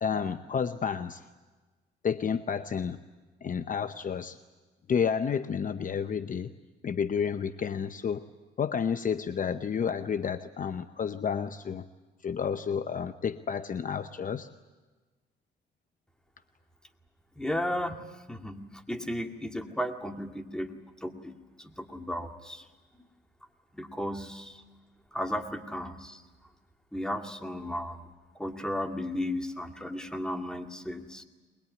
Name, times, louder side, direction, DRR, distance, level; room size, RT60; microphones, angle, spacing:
voice 1, 0.0-1.2 2.0-3.0 3.4-4.4 4.9-6.5 6.8-8.2 8.6-11.8 12.2-14.5, left 7 dB, 40° left, 10 dB, 0.8 m, -30 dB
voice 2, 17.4-18.0 18.3-21.4 21.6-22.6 23.7-24.5 25.1-26.2 26.9-28.0 28.4-31.2, left 1 dB, 5° left, 4 dB, 2.2 m, -34 dB
22.0 x 21.5 x 9.5 m, 1.3 s
cardioid pair, 90°, 20 cm